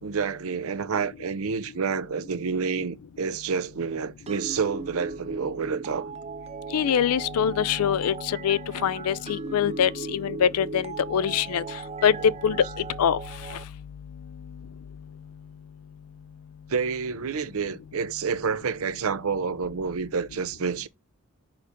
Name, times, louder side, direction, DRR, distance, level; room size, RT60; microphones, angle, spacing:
voice 1, 0.0-6.0 8.8-8.9 16.7-20.9, right 5 dB, 70° right, 0.6 m, -29 dB
sound 1, 4.3-13.6, right 5 dB, 25° right, 0.5 m, -38 dB
voice 2, 6.7-11.6 12.0-12.2 12.4-12.6 13.0-13.2, left 8 dB, 80° left, 0.4 m, -24 dB
5.0 x 4.4 x 5.1 m
head